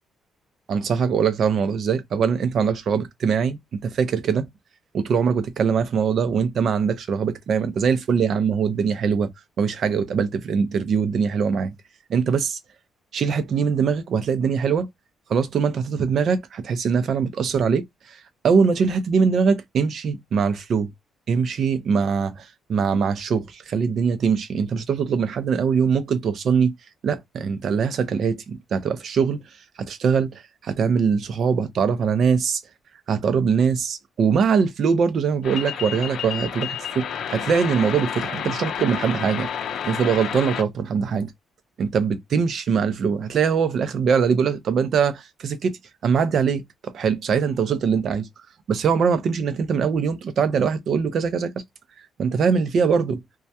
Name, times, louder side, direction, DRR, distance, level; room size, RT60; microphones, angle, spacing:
voice 1, 0.7-4.5 4.9-9.3 9.6-11.7 12.1-12.6 13.1-14.9 15.3-18.2 18.4-20.9 21.3-26.7 27.0-29.4 29.8-32.6 33.1-39.5 39.8-41.3 41.8-45.7 46.0-48.3 48.7-51.5 52.2-53.2, right 6 dB, 60° right, 0.5 m, -22 dB
sound 1, 35.4-40.6, left 8 dB, 70° left, 0.5 m, -30 dB
2.3 x 2.1 x 2.7 m
cardioid pair, 90°, 0 cm